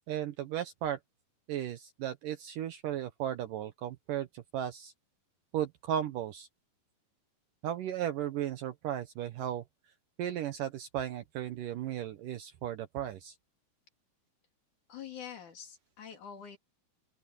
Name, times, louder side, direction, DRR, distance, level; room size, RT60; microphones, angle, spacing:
voice 1, 0.1-1.0 1.5-4.9 5.5-6.5 7.6-9.6 10.2-13.4, right 11 dB, 70° right, 2.2 m, -35 dB
voice 2, 14.9-16.6, left 8 dB, 50° left, 3.9 m, -45 dB
open air
omnidirectional pair, 4.7 m